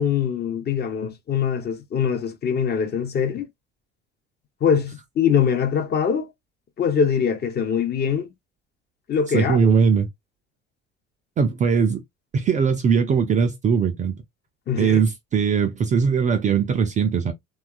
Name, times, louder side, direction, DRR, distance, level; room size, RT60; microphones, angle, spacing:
voice 1, 0.0-3.5 4.6-6.3 6.8-8.3 9.1-9.7 14.7-15.0, left 7 dB, 30° left, 0.7 m, -23 dB
voice 2, 9.3-10.1 11.4-12.0 12.3-14.2 14.8-17.3, right 6 dB, 20° right, 0.4 m, -20 dB
2.8 x 2.3 x 2.3 m
figure-of-eight pair, 60°, 34 cm